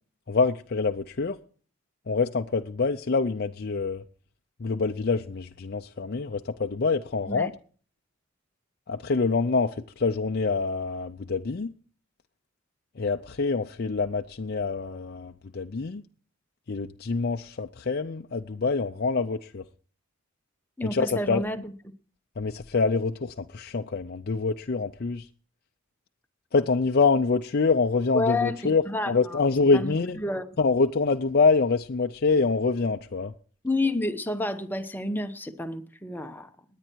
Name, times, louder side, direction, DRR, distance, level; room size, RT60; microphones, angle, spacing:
voice 1, 0.3-1.4 2.1-4.0 4.6-7.5 8.9-11.7 13.0-16.0 16.7-19.6 20.8-21.4 22.4-25.3 26.5-30.2 30.6-33.3, left 4 dB, 45° left, 0.5 m, -25 dB
voice 2, 20.8-21.6 28.1-28.6 28.9-29.4 29.7-30.4 33.6-36.5, left 2 dB, 10° left, 0.9 m, -29 dB
20.0 x 9.1 x 4.6 m
head